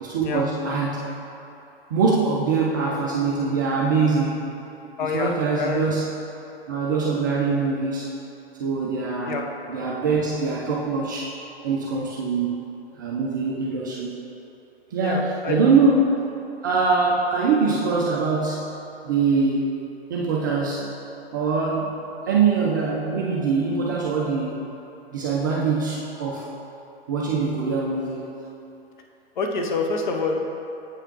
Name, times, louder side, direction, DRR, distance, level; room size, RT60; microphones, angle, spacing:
voice 1, 0.0-1.1 1.9-4.5 5.0-6.1 6.7-8.1 8.6-9.4 9.7-11.3 11.6-12.6 12.9-14.1 14.9-16.3 16.6-18.7 19.0-19.8 20.1-20.9 21.3-22.0 22.3-24.6 25.1-26.5 27.1-28.3, right 4 dB, 20° right, -4 dB, 0.3 m, -23 dB
voice 2, 5.0-5.8 9.3-9.4 15.0-15.7 17.3-17.4 29.4-30.6, left 4 dB, 50° left, 2 dB, 0.8 m, -27 dB
7.9 x 4.9 x 2.9 m, 2.8 s
figure-of-eight pair, 115°, 31 cm